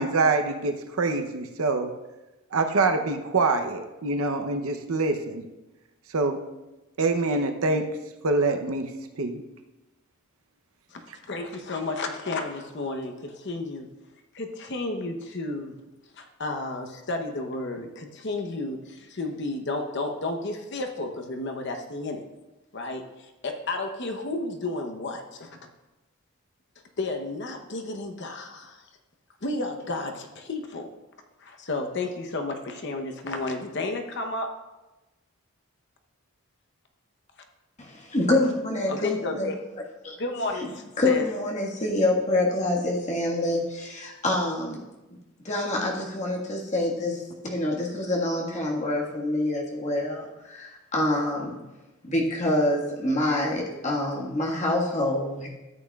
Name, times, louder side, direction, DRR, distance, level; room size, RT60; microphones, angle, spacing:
voice 1, 0.0-1.9 2.5-5.5 6.1-6.4 7.0-7.9 8.2-8.9 9.2-9.4, right 3 dB, 75° right, 6 dB, 0.7 m, -25 dB
voice 2, 10.9-13.9 14.3-15.8 16.2-22.2 22.7-25.5 27.0-28.8 29.4-30.9 31.4-34.5 38.9-39.6 40.2-41.2, left 2 dB, 55° left, 4 dB, 0.9 m, -32 dB
voice 3, 37.8-39.5 40.0-40.1 40.6-40.7 41.0-44.8 45.4-51.6 52.0-55.5, left 1 dB, 30° left, -2 dB, 1.6 m, -26 dB
13.5 x 8.7 x 2.4 m, 1.1 s
head